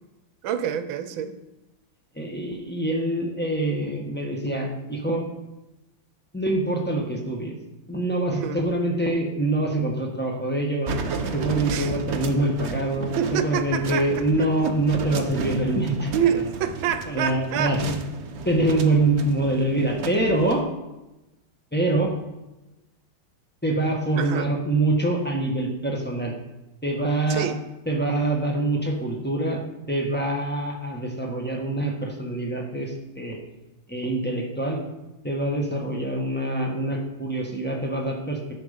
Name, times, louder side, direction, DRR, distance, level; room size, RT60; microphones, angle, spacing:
voice 1, 0.4-1.4 8.4-8.7 11.7-11.9 13.2-14.7 16.1-17.8 24.2-24.5 27.3-27.6, right 8 dB, 80° right, 11 dB, 1.5 m, -27 dB
voice 2, 2.1-5.2 6.3-7.5 7.9-10.9 11.3-16.1 17.1-17.8 18.4-20.6 21.7-22.1 23.6-26.3 26.8-27.5 27.9-29.6 29.9-33.4 33.9-34.8 35.2-38.4, right 2 dB, 5° left, 0 dB, 1.1 m, -25 dB
sound 1, 10.9-20.6, right 4 dB, 60° right, 0.7 m, -33 dB
10.5 x 6.3 x 5.1 m, 0.99 s
omnidirectional pair, 2.2 m